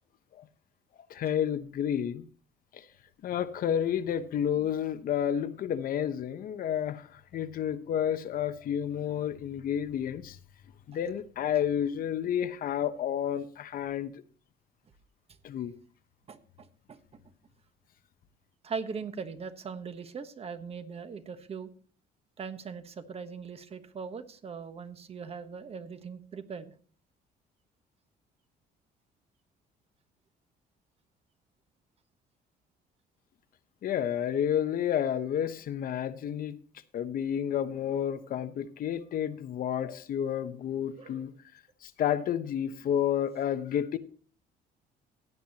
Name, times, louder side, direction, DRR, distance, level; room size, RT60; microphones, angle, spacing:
voice 1, 1.1-2.3 2.7-2.8 3.2-10.4 10.9-14.2 15.4-15.7 33.8-36.6 36.9-41.3 41.8-44.0, left 9 dB, 55° left, 0.9 m, -30 dB
voice 2, 16.3-17.0 18.6-21.7 22.4-26.7 41.0-41.2, right 5 dB, 35° right, 1.2 m, -40 dB
16.0 x 9.2 x 2.9 m
cardioid pair, 110°, 17 cm